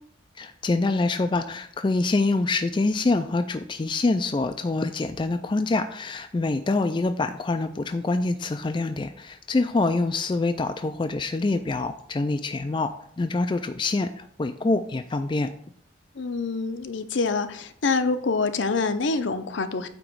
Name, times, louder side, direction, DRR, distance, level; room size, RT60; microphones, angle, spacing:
voice 1, 0.4-12.9 13.2-15.5, left 3 dB, 25° left, 7 dB, 0.3 m, -25 dB
voice 2, 16.1-19.9, left 4 dB, 70° left, 9 dB, 0.6 m, -26 dB
8.6 x 3.0 x 6.1 m, 0.62 s
head